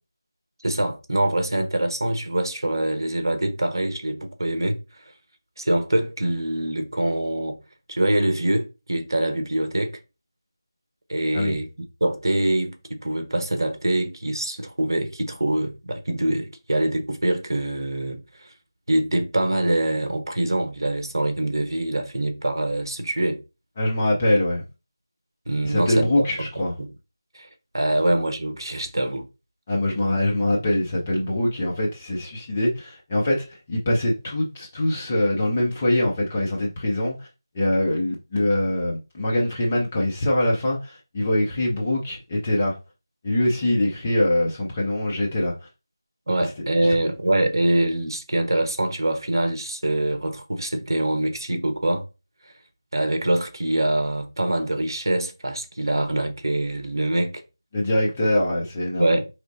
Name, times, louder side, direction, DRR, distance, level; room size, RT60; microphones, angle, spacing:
voice 1, 0.6-4.8 5.6-7.6 7.9-10.0 11.1-11.7 12.0-18.5 18.9-23.4 25.5-26.9 27.3-27.5 27.7-29.3 46.3-52.1 52.9-57.4 59.0-59.3, right 1 dB, 60° right, 0.9 m, -24 dB
voice 2, 23.8-24.6 25.6-26.7 29.7-37.3 37.5-42.8 43.2-45.5 46.4-46.5 46.8-46.9 57.7-59.2, left 1 dB, 10° left, 0.3 m, -23 dB
4.4 x 3.1 x 2.6 m
figure-of-eight pair, 175°, 2 cm